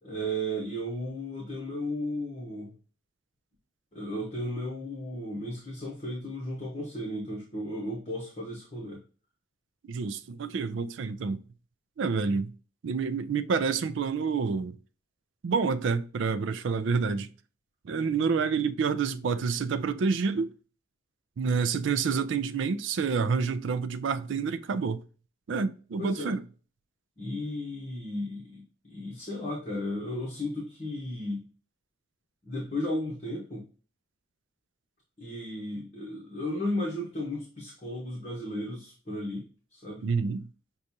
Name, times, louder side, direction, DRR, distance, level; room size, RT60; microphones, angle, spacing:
voice 1, 0.0-2.7 3.9-9.0 26.0-26.3 27.2-31.4 32.4-33.6 35.2-40.0, left 1 dB, 30° left, 1.1 m, -34 dB
voice 2, 9.9-11.4 12.0-12.5 12.8-14.8 15.4-17.3 17.8-20.5 21.4-25.0 25.5-26.4 40.0-40.5, right 5 dB, 60° right, 0.4 m, -28 dB
6.3 x 2.4 x 2.7 m
head